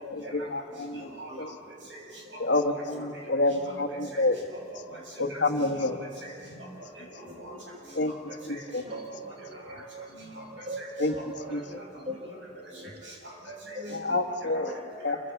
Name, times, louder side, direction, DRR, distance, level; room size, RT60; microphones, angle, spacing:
voice 1, 0.1-1.5 2.4-4.4 5.2-6.0 7.9-8.1 8.5-8.8 11.0-11.2 11.5-11.8 13.9-14.7 15.0-15.2, left 2 dB, 70° left, 6 dB, 1.5 m, -28 dB
voice 2, 0.9-1.5 1.9-2.0 2.5-2.8 3.5-4.2 4.7-5.0 5.3-5.9 6.2-6.7 7.0-7.1 7.3-7.5 7.9-8.2 8.5-8.6 9.7-9.8 10.2-10.9 11.4-11.5 11.8-11.9 12.3-12.4 13.0-13.8 15.1-15.2, right 1 dB, 85° right, -1 dB, 7.5 m, -44 dB
voice 3, 7.2-7.6 8.8-10.1 10.3-12.2 12.7-12.9 13.7-14.2 14.6-14.8, right 1 dB, 35° right, 4 dB, 1.5 m, -41 dB
27.5 x 24.5 x 7.1 m, 3.0 s
head